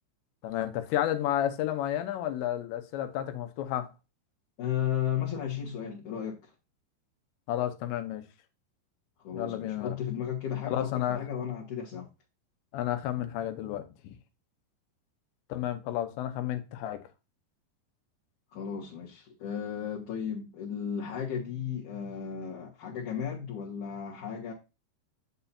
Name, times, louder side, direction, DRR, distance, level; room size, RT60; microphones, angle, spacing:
voice 1, 0.4-3.9 7.5-8.2 9.3-10.0 10.7-11.2 12.7-14.2 15.5-17.0, left 12 dB, 80° left, 3.1 m, -31 dB
voice 2, 4.6-6.5 9.2-12.1 18.5-24.5, left 8 dB, 55° left, 2.4 m, -34 dB
8.0 x 6.9 x 2.7 m
omnidirectional pair, 5.3 m